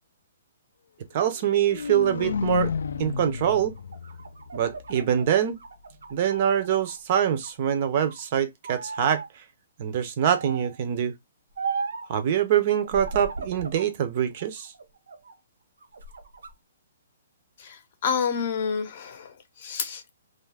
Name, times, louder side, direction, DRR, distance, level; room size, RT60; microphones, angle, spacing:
voice 1, 1.1-2.7 3.0-3.7 4.5-5.6 6.1-9.4 9.8-11.1 12.1-14.7, right 9 dB, 35° right, 0.4 m, -24 dB
sound 1, 1.3-5.4, left 5 dB, 85° left, 0.3 m, -32 dB
sound 2, 3.8-7.0 7.4-8.2 8.6-9.3 10.3-10.8 11.6-12.1 12.8-13.9 14.4-15.3 15.8-16.5, right 5 dB, 90° right, 0.6 m, -36 dB
voice 2, 17.6-20.1, left 6 dB, 40° left, 0.6 m, -29 dB
2.4 x 2.4 x 3.3 m
hypercardioid pair, 170°, 0 cm